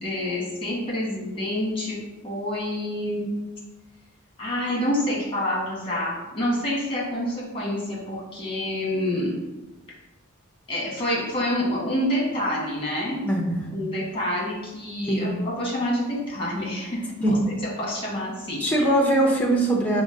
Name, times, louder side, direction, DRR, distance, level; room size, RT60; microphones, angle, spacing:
voice 1, 0.0-2.0 2.2-3.3 4.4-9.3 10.7-13.2 13.7-17.3 17.8-18.9, left 1 dB, 25° left, -5 dB, 1.3 m, -27 dB
voice 2, 13.2-13.7 15.1-15.4 17.2-17.5 18.6-20.0, right 1 dB, 10° left, -1 dB, 0.7 m, -21 dB
5.0 x 2.1 x 3.7 m, 1.1 s
head